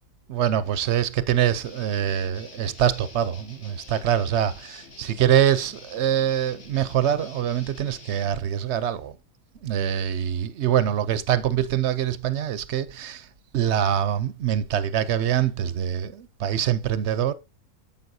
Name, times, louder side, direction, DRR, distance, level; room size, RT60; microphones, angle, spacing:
voice 1, 0.3-9.2 9.6-13.3 13.5-17.3, right 10 dB, 60° right, 0.8 m, -24 dB
Guitar, 1.6-8.3, left 3 dB, 55° left, 1.9 m, -47 dB
9.4 x 7.2 x 2.7 m
omnidirectional pair, 1.5 m